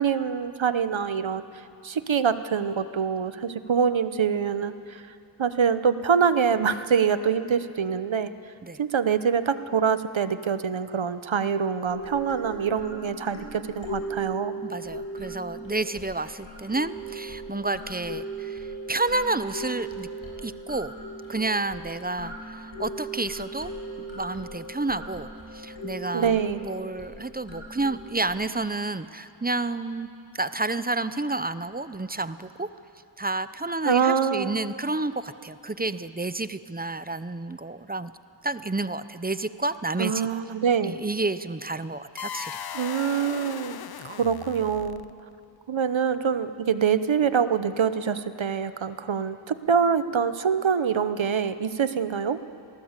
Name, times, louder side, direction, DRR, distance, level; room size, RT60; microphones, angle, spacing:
voice 1, 0.0-1.4 1.8-5.1 5.4-8.3 8.8-14.5 26.1-26.7 33.8-34.5 40.0-41.0 42.7-43.8 44.0-45.0 45.7-52.4, right 7 dB, 75° right, 12 dB, 1.0 m, -25 dB
sound 1, 11.8-28.4, right 2 dB, 85° left, 6.1 m, -38 dB
voice 2, 14.6-20.1 20.4-20.9 21.3-23.7 24.1-25.3 25.5-30.1 30.3-32.7 33.2-38.1 38.4-40.3 40.8-42.6, right 2 dB, 20° right, 13 dB, 0.7 m, -30 dB
sound 2, 42.2-45.3, left 8 dB, 55° left, 0.6 m, -37 dB
26.5 x 18.5 x 8.2 m, 2.6 s
wide cardioid pair, 75°, 46 cm